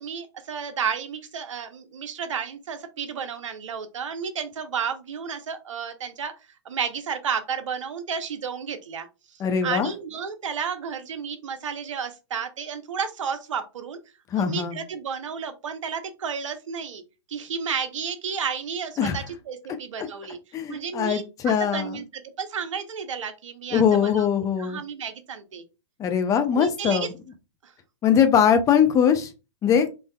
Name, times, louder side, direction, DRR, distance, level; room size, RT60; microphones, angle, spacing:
voice 1, 0.0-6.3 6.6-9.1 9.6-14.0 14.3-17.0 17.3-20.4 20.7-24.3 24.6-25.6 26.5-27.1 27.6-27.7, right 6 dB, 80° right, 8 dB, 0.7 m, -32 dB
voice 2, 9.4-9.9 14.3-14.8 19.0-19.2 20.0-20.1 20.5-22.0 23.7-24.8 26.0-27.1 28.0-29.3 29.6-29.9, left 8 dB, 20° left, 8 dB, 0.5 m, -21 dB
3.4 x 2.6 x 2.2 m, 0.28 s
hypercardioid pair, 125°, 16 cm